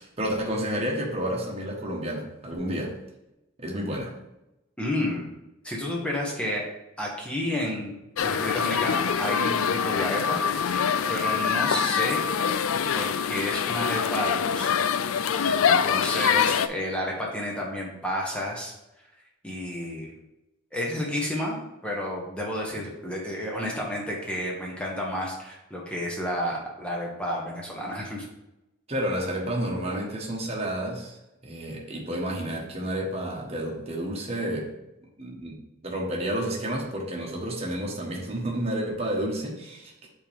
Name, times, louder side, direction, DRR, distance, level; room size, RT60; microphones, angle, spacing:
voice 1, 0.0-3.0 3.6-4.2 28.9-31.2 31.4-34.7 35.2-35.6 35.8-39.9, right 1 dB, 30° right, -2 dB, 1.2 m, -30 dB
voice 2, 4.8-5.3 5.6-6.6 7.0-12.2 12.9-14.8 15.7-18.7 19.4-20.1 20.7-28.3, left 1 dB, 5° left, -3 dB, 1.1 m, -31 dB
sound 1, 8.2-16.7, left 7 dB, 80° left, 0.4 m, -25 dB
8.0 x 3.8 x 3.5 m, 0.91 s
head